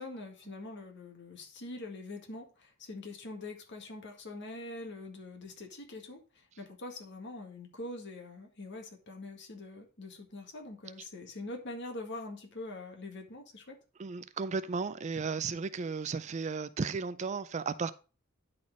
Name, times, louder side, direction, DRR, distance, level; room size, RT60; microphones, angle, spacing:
voice 1, 0.0-13.8, left 2 dB, 55° left, 1.9 m, -44 dB
voice 2, 14.0-17.9, right 5 dB, 35° right, 0.4 m, -34 dB
10.0 x 4.3 x 4.7 m
head